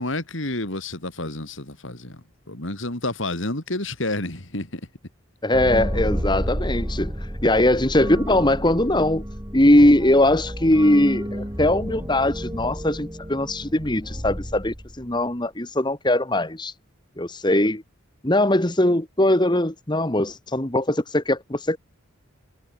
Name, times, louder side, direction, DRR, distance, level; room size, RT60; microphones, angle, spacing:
voice 1, 0.0-4.8, left 2 dB, 65° left, 3.6 m, -30 dB
voice 2, 5.4-9.2 9.5-16.7 17.2-17.8 18.2-21.8, left 1 dB, 20° left, 1.6 m, -20 dB
sound 1, 5.5-15.2, equal, 15° right, 6.9 m, -30 dB
head